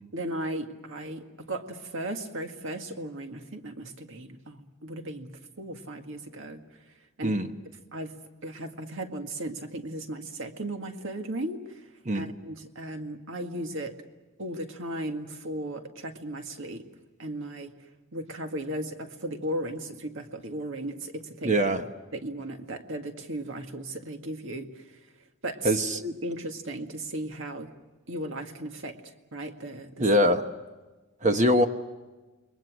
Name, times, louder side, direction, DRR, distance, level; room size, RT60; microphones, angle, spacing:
voice 1, 0.1-6.6 7.2-7.4 7.9-11.8 12.1-14.0 14.4-16.9 17.2-17.8 18.1-21.6 22.1-25.0 25.4-27.7 28.1-29.0 29.3-30.1, right 1 dB, 60° right, 5 dB, 2.0 m, -36 dB
voice 2, 21.4-21.8 25.6-26.0 30.0-30.4 31.2-31.7, equal, 35° right, 6 dB, 1.1 m, -22 dB
29.0 x 22.5 x 6.3 m, 1.2 s
head